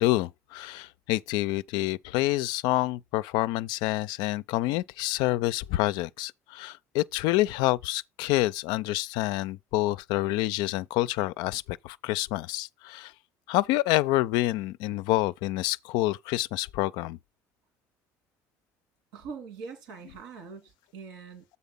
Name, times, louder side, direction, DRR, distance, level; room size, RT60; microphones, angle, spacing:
voice 1, 0.0-13.1 13.5-17.2, left 17 dB, 75° left, 0.3 m, -27 dB
voice 2, 19.1-21.4, right 5 dB, 80° right, 2.6 m, -43 dB
7.2 x 4.1 x 5.3 m
hypercardioid pair, 70°, 7 cm